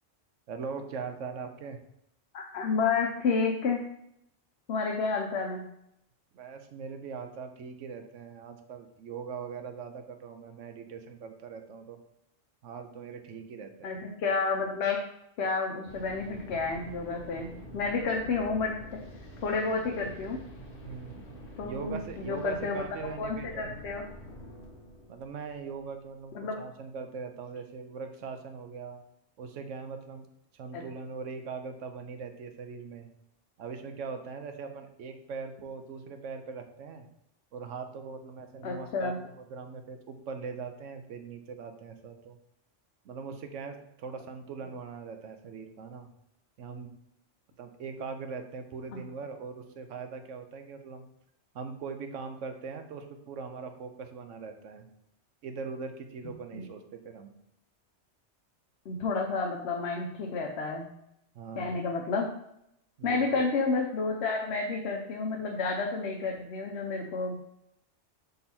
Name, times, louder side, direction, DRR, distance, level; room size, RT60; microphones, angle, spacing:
voice 1, 0.5-1.8 6.3-12.0 12.6-14.0 20.8-21.3 21.6-23.8 25.1-29.0 29.4-30.3 30.5-33.1 33.6-37.1 37.5-42.4 43.0-46.1 46.6-46.9 47.6-51.1 51.5-54.9 55.4-57.3 61.3-61.8 63.0-63.5, right 5 dB, 80° right, 7 dB, 1.0 m, -41 dB
voice 2, 2.3-3.8 4.7-5.6 13.8-15.0 15.4-19.0 19.4-20.4 21.6-22.9 23.2-24.0 26.3-26.6 30.7-30.8 38.6-39.2 48.9-49.0 56.5-56.7 58.9-60.9 61.6-62.3 63.0-67.3, left 4 dB, 65° left, 0 dB, 0.9 m, -30 dB
sound 1, 15.9-26.6, equal, 45° left, 1.4 m, -47 dB
5.6 x 4.0 x 4.3 m, 0.77 s
omnidirectional pair, 1.3 m